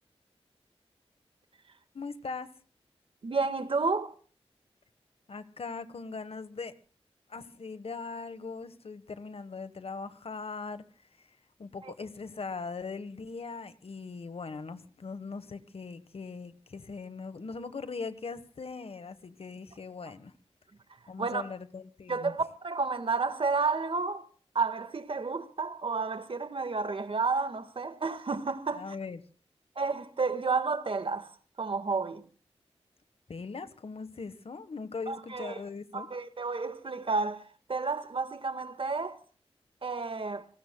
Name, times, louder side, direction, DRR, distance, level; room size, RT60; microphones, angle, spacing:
voice 1, 1.9-2.5 5.3-6.7 7.3-10.8 11.2-11.3 11.6-20.3 21.1-22.4 28.7-29.2 33.3-36.1, left 4 dB, 65° left, 1.3 m, -40 dB
voice 2, 3.2-4.1 11.8-11.9 21.2-21.5 22.1-24.3 24.5-28.9 29.7-31.3 31.6-32.2 35.1-35.6 35.9-39.2 39.8-40.5, right 4 dB, 55° right, 1.6 m, -31 dB
29.5 x 19.0 x 2.3 m
wide cardioid pair, 80°, 11 cm